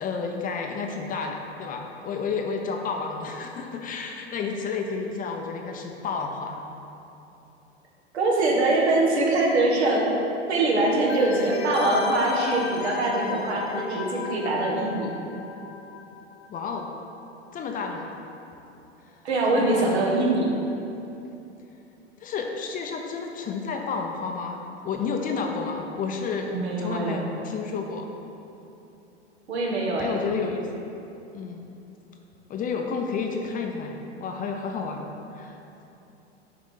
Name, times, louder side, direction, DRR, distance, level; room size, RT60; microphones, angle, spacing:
voice 1, 0.0-6.6 11.4-11.5 16.5-16.9 17.5-18.2 19.5-20.1 22.2-24.6 24.8-28.1 30.0-30.7 31.3-31.7 32.5-35.1 35.3-35.6, left 5 dB, 25° left, 2 dB, 0.7 m, -31 dB
voice 2, 8.1-10.0 10.5-15.1 19.2-20.5 26.5-27.3 29.5-30.2, right 2 dB, 70° right, -2 dB, 1.6 m, -23 dB
sound 1, 11.1-16.6 16.8-16.9, left 5 dB, 65° left, 0.8 m, -34 dB
6.6 x 4.9 x 5.6 m, 2.9 s
figure-of-eight pair, 95°, 34 cm